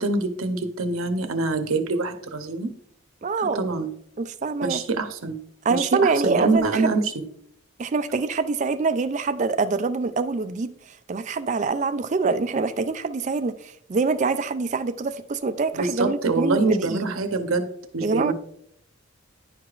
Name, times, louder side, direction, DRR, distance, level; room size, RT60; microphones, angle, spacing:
voice 1, 0.0-2.7 3.5-3.9 4.6-5.4 5.8-7.0 15.7-17.7 17.9-18.3, right 3 dB, 75° right, 0.8 m, -25 dB
voice 2, 3.2-3.7 4.2-4.8 5.6-6.9 7.8-17.1 18.0-18.3, right 4 dB, 35° right, 0.3 m, -25 dB
10.5 x 4.8 x 2.4 m
head